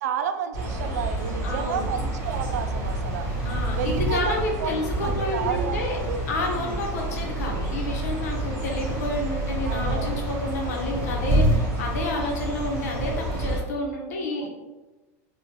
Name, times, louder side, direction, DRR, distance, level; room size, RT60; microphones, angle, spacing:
voice 1, 0.0-3.3 3.7-4.3 4.6-4.7 5.0-6.2 6.6-6.7 9.6-10.2 14.4-14.5, right 7 dB, 85° right, 9 dB, 0.4 m, -31 dB
sound 1, 0.5-13.6, right 1 dB, 30° right, 1.3 m, -28 dB
voice 2, 1.4-1.9 3.4-6.0 6.3-14.5, left 2 dB, 80° left, 0 dB, 0.9 m, -30 dB
3.7 x 2.4 x 2.9 m, 1.2 s
supercardioid pair, 165°, 8 cm